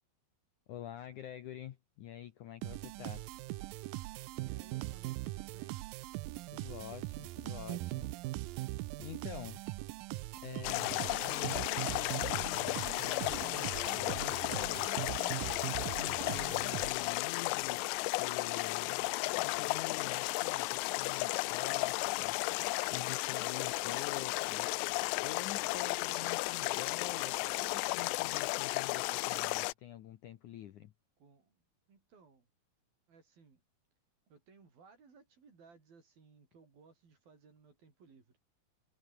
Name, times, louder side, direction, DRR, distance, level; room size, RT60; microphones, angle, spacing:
voice 1, 0.7-3.3 6.5-8.2 9.0-9.6 10.3-14.9 15.8-24.9 25.2-30.9, left 11 dB, 70° left, 2.0 m, -47 dB
sound 1, 2.6-17.2, right 19 dB, 80° right, 2.1 m, -41 dB
voice 2, 4.4-5.8 25.3-25.7 31.2-32.5 33.1-33.6 34.3-38.4, right 5 dB, 60° right, 7.4 m, -61 dB
sound 2, 10.6-29.7, left 25 dB, 85° left, 2.7 m, -34 dB
omnidirectional pair, 4.8 m